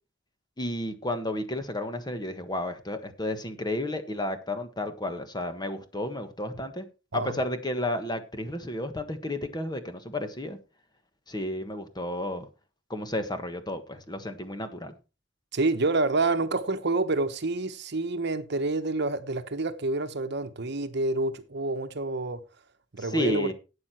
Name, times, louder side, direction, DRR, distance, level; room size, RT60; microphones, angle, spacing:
voice 1, 0.6-6.9 7.1-10.6 11.3-12.5 12.9-14.9 23.0-23.5, left 1 dB, 20° left, 1.4 m, -32 dB
voice 2, 15.5-22.4 22.9-23.5, right 2 dB, 60° right, 1.0 m, -28 dB
12.5 x 8.7 x 4.4 m
head